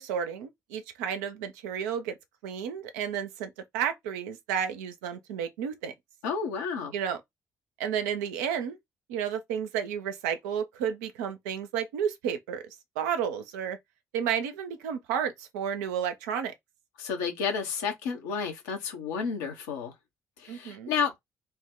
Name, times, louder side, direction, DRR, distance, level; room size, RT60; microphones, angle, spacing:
voice 1, 0.0-2.2 2.4-5.9 6.9-7.2 7.8-8.8 9.1-12.6 13.0-13.8 14.1-16.5 20.5-20.9, right 8 dB, 75° right, 0.4 m, -32 dB
voice 2, 6.2-6.9 17.0-19.9 20.4-21.1, left 6 dB, 75° left, 0.7 m, -31 dB
2.7 x 2.0 x 3.5 m
figure-of-eight pair, 40°, 9 cm